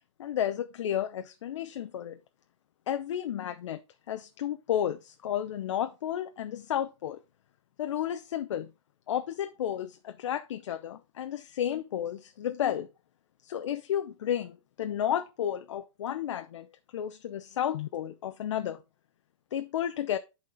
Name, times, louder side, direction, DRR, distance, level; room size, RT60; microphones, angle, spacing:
voice 1, 0.2-2.2 2.9-3.8 4.1-7.2 7.8-8.7 9.1-12.9 13.4-18.8 19.5-20.2, left 10 dB, 75° left, 0.7 m, -32 dB
10.5 x 4.3 x 3.7 m
supercardioid pair, 180°, 15 cm